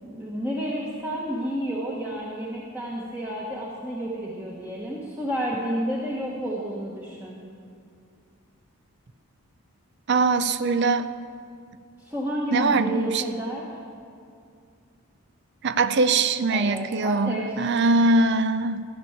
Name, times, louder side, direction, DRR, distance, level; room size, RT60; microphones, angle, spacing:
voice 1, 0.0-7.4 12.0-13.6 16.5-17.6, equal, 10° right, -5 dB, 1.2 m, -30 dB
voice 2, 10.1-11.1 12.5-13.2 15.6-18.9, right 3 dB, 50° right, 12 dB, 0.5 m, -22 dB
14.0 x 7.0 x 8.8 m, 2.3 s
head